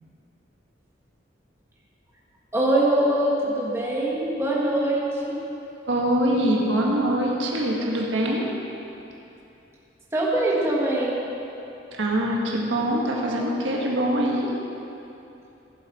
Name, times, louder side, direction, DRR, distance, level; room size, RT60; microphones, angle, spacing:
voice 1, 2.5-5.4 10.1-11.2, right 1 dB, 15° right, -6 dB, 1.5 m, -23 dB
voice 2, 5.9-8.5 11.9-14.5, right 1 dB, 85° right, -2 dB, 1.5 m, -23 dB
15.0 x 7.4 x 4.2 m, 2.9 s
head